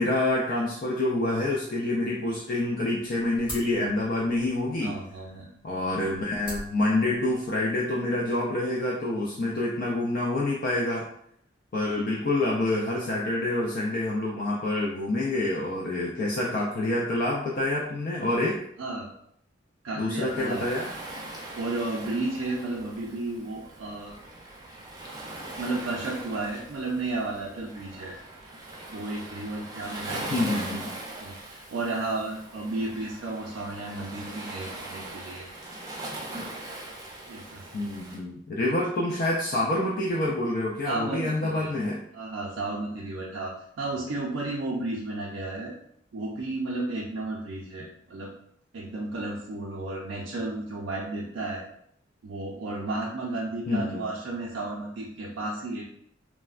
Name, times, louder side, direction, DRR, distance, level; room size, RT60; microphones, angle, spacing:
voice 1, 0.0-5.0 5.6-11.0 11.7-18.6 20.0-20.9 30.3-30.9 37.7-42.0 53.7-54.1, left 2 dB, 45° left, -3 dB, 0.3 m, -27 dB
sound 1, 2.7-7.7, equal, 25° left, 1.4 m, -45 dB
voice 2, 4.8-5.5 18.8-19.1 19.8-20.7 21.5-24.1 25.6-28.2 28.9-30.7 31.2-35.5 37.3-37.7 40.8-41.7 42.1-45.7 46.1-48.3 48.7-51.6 52.2-55.8, right 2 dB, 80° right, -4 dB, 0.4 m, -33 dB
Waves surf, 20.2-38.2, right 1 dB, 20° right, 0.4 m, -40 dB
3.2 x 2.1 x 2.4 m, 0.70 s
head